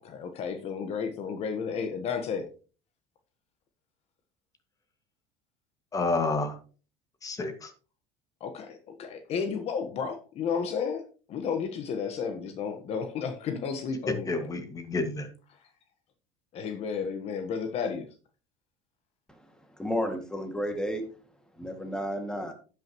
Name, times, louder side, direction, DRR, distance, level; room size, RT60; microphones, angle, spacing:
voice 1, 0.0-2.5 8.4-11.0 11.3-14.5 16.5-18.1, left 6 dB, 50° left, 1.3 m, -32 dB
voice 2, 5.9-6.6 7.2-7.7 14.3-15.3, left 3 dB, 25° left, 2.0 m, -29 dB
voice 3, 19.8-21.1 21.6-22.5, equal, 5° left, 2.2 m, -32 dB
12.0 x 8.8 x 3.1 m
supercardioid pair, 115°, 14 cm